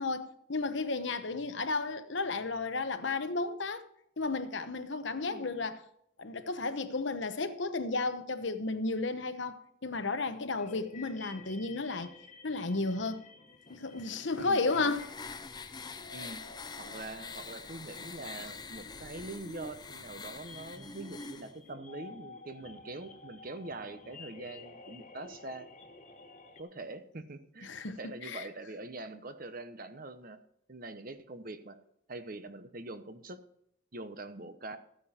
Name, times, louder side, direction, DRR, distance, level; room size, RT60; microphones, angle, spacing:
voice 1, 0.0-3.8 4.2-5.8 6.2-12.2 12.4-13.2 13.7-15.1 27.6-28.5, left 3 dB, 65° left, 1.0 m, -33 dB
sound 1, 10.6-26.6, left 3 dB, 35° left, 1.5 m, -53 dB
sound 2, 14.0-21.5, left 4 dB, 20° left, 0.6 m, -45 dB
voice 2, 14.4-14.9 16.1-16.4 16.8-25.7 26.6-30.4 30.7-31.8 32.1-33.4 33.9-34.8, right 2 dB, 45° right, 1.0 m, -44 dB
14.5 x 9.4 x 4.4 m
head